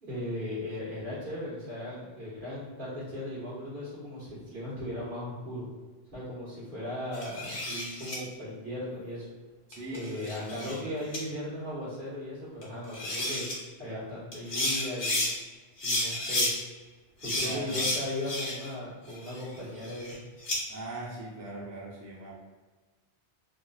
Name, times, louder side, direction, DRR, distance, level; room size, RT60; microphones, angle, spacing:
voice 1, 0.0-5.7 6.1-9.3 9.9-13.5 13.8-15.2 15.8-16.5 17.2-20.2, left 1 dB, 50° right, -10 dB, 1.7 m, -37 dB
sound 1, 7.1-8.2 9.7-10.8 11.1-11.2 12.6-12.7 12.9-13.5 14.3-15.3 15.8-16.5 17.2-18.7 19.1-20.6, left 1 dB, 55° left, 0.9 m, -31 dB
voice 2, 9.7-10.8 17.4-17.9 20.7-22.4, right 2 dB, 25° right, -6 dB, 0.4 m, -40 dB
3.8 x 2.5 x 2.4 m, 1.3 s
omnidirectional pair, 1.1 m